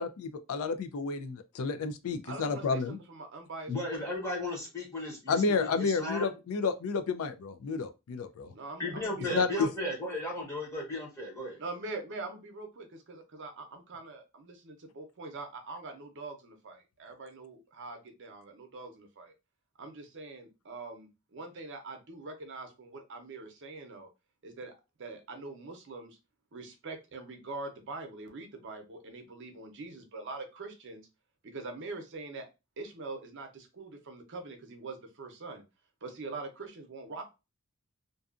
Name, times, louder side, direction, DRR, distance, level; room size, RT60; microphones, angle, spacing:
voice 1, 0.0-3.0 5.3-8.5 9.3-9.7, left 4 dB, 75° left, 0.4 m, -31 dB
voice 2, 2.2-4.1 8.5-9.7 11.6-19.3 19.8-24.1 24.4-24.7 25.0-26.2 26.5-31.1 31.4-32.5 32.8-35.6 36.0-37.2, right 3 dB, 55° right, 0.6 m, -43 dB
voice 3, 3.7-5.7 6.0-6.3 8.8-11.6, left 1 dB, 15° left, 0.9 m, -35 dB
2.6 x 2.3 x 2.4 m
head